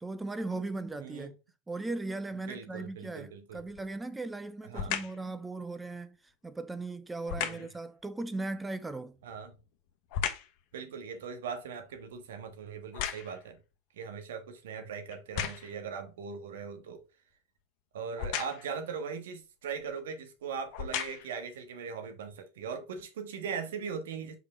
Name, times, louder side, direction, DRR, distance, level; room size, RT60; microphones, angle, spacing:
voice 1, 0.0-1.3 1.7-6.2 6.4-9.2, right 2 dB, 10° right, 0.7 m, -38 dB
voice 2, 1.0-1.3 2.5-3.6 4.6-5.0 7.4-7.7 9.2-9.5 10.7-13.6 14.0-17.0 17.9-24.4, right 6 dB, 70° right, 1.6 m, -40 dB
sound 1, 3.6-4.0 4.7-5.2 7.2-7.8 9.2-10.6 11.1-13.6 14.2-14.3 15.1-15.8 18.2-18.8 19.8-19.9 20.6-21.4 22.0-22.1, left 9 dB, 55° left, 1.2 m, -36 dB
5.3 x 4.9 x 4.4 m
hypercardioid pair, 90°, 0 cm